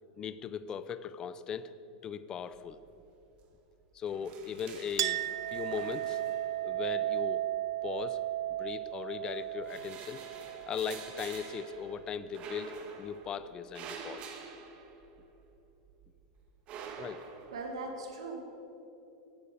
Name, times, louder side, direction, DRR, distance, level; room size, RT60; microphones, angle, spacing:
voice 1, 0.2-1.7 2.0-2.8 3.9-5.2 5.5-6.2 6.6-7.4 7.8-8.2 8.6-10.2 10.7-14.4 17.0-17.3, left 7 dB, 25° left, 14 dB, 0.6 m, -38 dB
sound 1, 2.5-3.0 3.3-3.5 3.8-6.9 7.8-8.8 9.2-15.5 15.9-17.8, right 5 dB, 40° right, 1.8 m, -48 dB
Chink clink, 5.0-12.0, right 14 dB, 70° right, 0.3 m, -35 dB
voice 2, 17.5-18.4, right 2 dB, 85° right, 3 dB, 2.4 m, -39 dB
14.0 x 9.4 x 8.4 m, 2.9 s
supercardioid pair, 140°, 3 cm